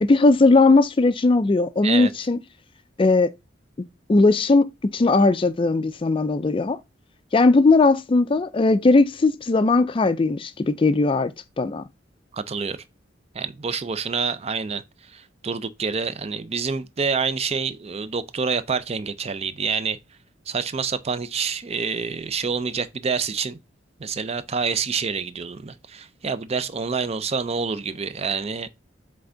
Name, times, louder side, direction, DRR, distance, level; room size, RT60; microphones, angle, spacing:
voice 1, 0.0-2.4 3.0-3.3 4.1-6.8 7.3-11.3 11.6-11.8, left 3 dB, 30° left, 0.4 m, -18 dB
voice 2, 12.3-12.8 13.3-14.8 15.1-20.0 20.5-23.6 24.0-28.7, right 5 dB, 35° right, 0.5 m, -27 dB
7.7 x 3.4 x 3.8 m
head